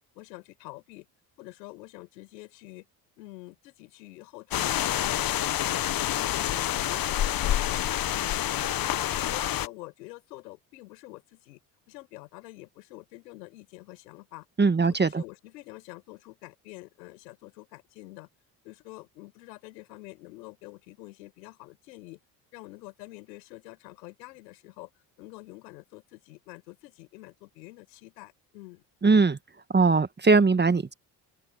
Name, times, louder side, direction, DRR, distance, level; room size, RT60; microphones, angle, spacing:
voice 1, 0.1-1.1 1.4-2.9 3.2-8.6 9.0-11.6 11.9-14.4 14.8-18.3 18.6-22.2 22.5-24.9 25.2-28.8, left 20 dB, 85° left, 6.3 m, -47 dB
sound 1, 4.5-9.7, left 12 dB, 45° left, 1.0 m, -27 dB
voice 2, 14.6-15.2 29.0-29.4 29.7-30.9, right 4 dB, 20° right, 1.5 m, -20 dB
open air
hypercardioid pair, 60°, 49 cm